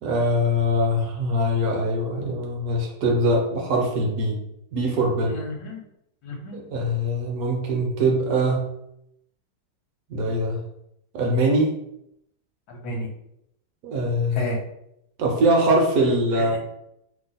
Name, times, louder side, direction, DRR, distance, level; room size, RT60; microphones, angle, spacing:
voice 1, 0.0-4.4 4.7-5.4 6.5-8.7 10.1-10.6 11.1-11.8 13.8-14.4 15.2-16.6, right 1 dB, 70° right, 1 dB, 1.0 m, -22 dB
voice 2, 5.2-5.8 6.2-6.6 12.7-13.1 14.3-14.6 16.3-16.6, left 1 dB, 70° left, 0 dB, 1.2 m, -31 dB
2.9 x 2.0 x 3.9 m, 0.79 s
omnidirectional pair, 1.9 m